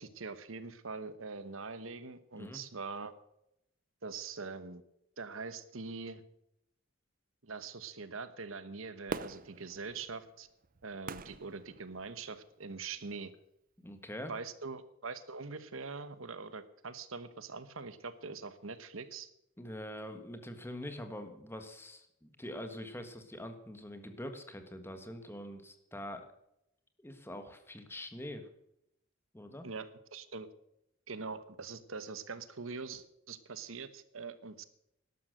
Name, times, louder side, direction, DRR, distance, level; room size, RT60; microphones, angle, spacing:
voice 1, 0.0-3.1 4.0-4.8 5.2-6.2 7.4-10.5 10.8-13.3 14.3-19.3 29.6-30.5 31.1-34.6, right 4 dB, 80° right, 13 dB, 1.1 m, -43 dB
Fireworks, 9.1-12.4 13.0-13.1, right 4 dB, 45° right, 0.7 m, -44 dB
voice 2, 13.8-14.3 19.6-26.3 27.0-28.5 29.3-29.7, left 1 dB, 10° left, 7 dB, 1.5 m, -44 dB
12.5 x 12.0 x 6.6 m, 0.80 s
head